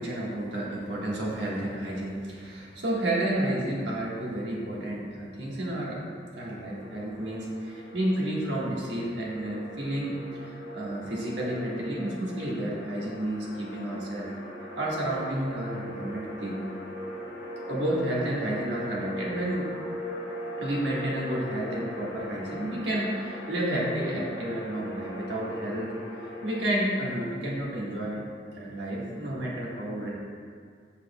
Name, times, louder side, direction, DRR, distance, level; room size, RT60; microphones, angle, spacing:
voice 1, 0.0-6.0 6.4-14.3 14.8-16.6 17.7-19.7 20.6-25.9 26.4-28.3 28.5-30.1, right 1 dB, 80° right, -5 dB, 1.4 m, -31 dB
sound 1, 6.7-26.6, equal, 85° left, 1.0 m, -40 dB
7.4 x 6.3 x 2.2 m, 2.1 s
head